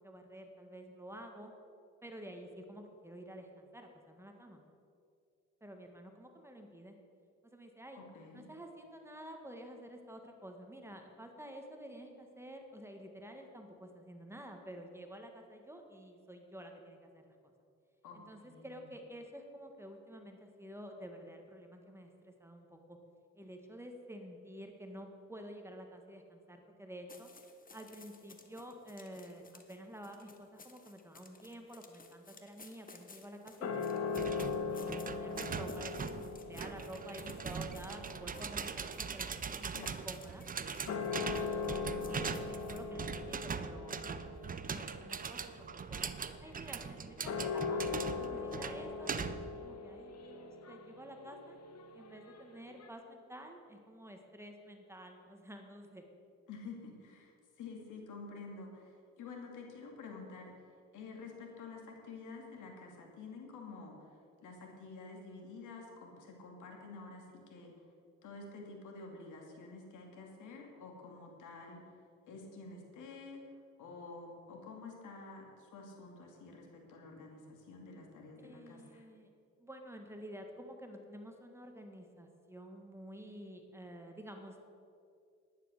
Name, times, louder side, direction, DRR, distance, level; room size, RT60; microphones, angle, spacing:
voice 1, 0.0-1.5 2.0-4.6 5.6-6.9 7.4-8.0 8.3-17.3 18.1-23.0 23.3-27.3 27.7-34.4 34.8-39.7 40.0-40.4 41.1-41.7 42.0-46.1 46.4-51.6 51.9-56.0 78.4-79.3 79.6-84.7, equal, 10° right, 3 dB, 1.6 m, -50 dB
voice 2, 7.9-8.5 18.0-18.8 39.7-40.0 40.7-41.4 56.5-60.5 60.9-64.1 64.4-67.7 68.2-71.8 72.3-73.4 73.8-79.0, left 3 dB, 80° left, 1 dB, 2.6 m, -49 dB
sound 1, 27.1-42.9, left 3 dB, 30° left, 1.3 m, -56 dB
sound 2, 33.6-40.2 40.7-52.9, left 5 dB, 55° left, 1.3 m, -41 dB
sound 3, 34.2-49.6, right 6 dB, 30° right, 0.6 m, -41 dB
11.0 x 9.9 x 6.6 m, 2.4 s
cardioid pair, 90°, 30 cm